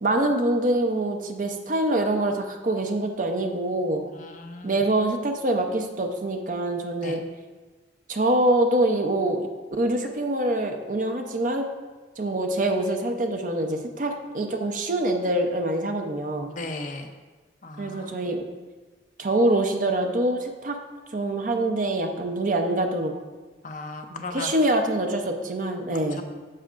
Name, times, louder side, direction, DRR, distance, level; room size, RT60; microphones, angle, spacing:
voice 1, 0.0-4.0 4.6-7.2 8.1-9.5 9.8-11.7 12.2-16.5 17.8-18.4 19.2-20.8 21.1-23.1 24.1-26.2, right 1 dB, 45° right, 4 dB, 0.7 m, -25 dB
voice 2, 4.1-4.8 7.0-7.2 16.5-17.1 17.6-18.1 23.6-24.5 26.1-26.2, left 2 dB, 45° left, 4 dB, 0.7 m, -36 dB
9.8 x 7.2 x 2.5 m, 1.3 s
head